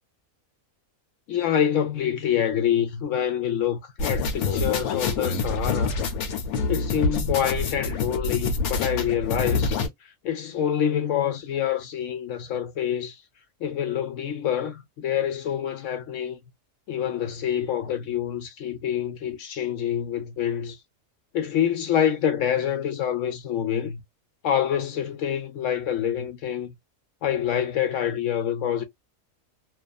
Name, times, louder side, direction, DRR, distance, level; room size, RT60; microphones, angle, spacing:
voice 1, 1.3-6.0 6.7-9.8 10.2-13.2 13.6-16.4 16.9-20.8 21.3-24.0 24.4-26.7 27.2-28.8, left 9 dB, 70° left, 0.9 m, -26 dB
sound 1, 4.0-9.9, left 4 dB, 90° left, 1.2 m, -26 dB
2.5 x 2.3 x 2.2 m
omnidirectional pair, 1.5 m